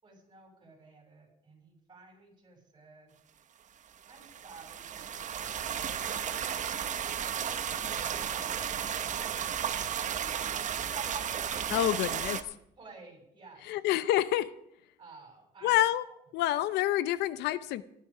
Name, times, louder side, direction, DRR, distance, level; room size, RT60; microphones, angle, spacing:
voice 1, 0.0-3.2 4.1-7.1 10.9-12.4 12.8-13.7 14.2-14.3 15.0-15.8, right 4 dB, 25° right, 1 dB, 6.8 m, -52 dB
sound 1, 4.0-12.4, right 8 dB, 45° right, 1.1 m, -34 dB
voice 2, 11.7-12.4 13.7-14.5 15.6-16.0 16.3-17.8, left 13 dB, 85° left, 16 dB, 0.7 m, -27 dB
15.5 x 12.0 x 4.9 m, 0.75 s
cardioid pair, 110°, 17 cm